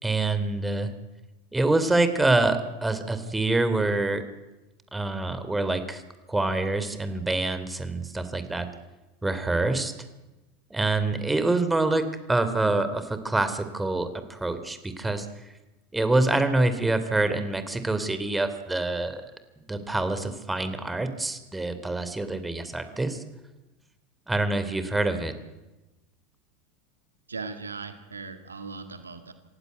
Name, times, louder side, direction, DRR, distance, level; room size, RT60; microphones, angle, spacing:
voice 1, 0.0-0.9 1.5-4.2 4.9-6.0 6.3-8.7 9.2-9.9 10.7-15.5 15.9-19.2 19.7-23.2 24.3-25.3, right 2 dB, 10° right, 11 dB, 3.0 m, -26 dB
voice 2, 27.3-29.3, right 4 dB, 90° right, 8 dB, 2.0 m, -38 dB
27.0 x 16.0 x 9.3 m, 1.1 s
hypercardioid pair, 80°, 0 cm